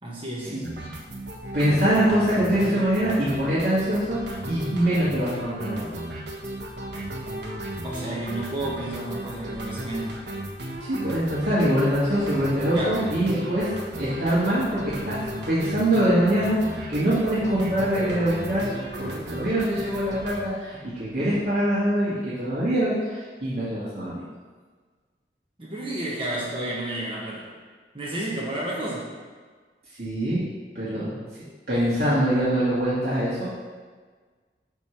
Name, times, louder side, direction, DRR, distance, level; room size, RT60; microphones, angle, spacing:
voice 1, 0.0-0.7 7.8-10.2 12.7-13.0 25.6-27.5 27.9-29.0, right 1 dB, 30° right, -5 dB, 1.3 m, -31 dB
sound 1, 0.6-20.4, right 1 dB, 80° right, 1.2 m, -35 dB
voice 2, 1.5-4.2 4.5-5.9 10.8-18.7 19.0-24.2 30.0-30.4 30.7-31.2 31.7-33.5, right 1 dB, 65° right, -11 dB, 2.1 m, -24 dB
9.0 x 3.4 x 6.0 m, 1.5 s
head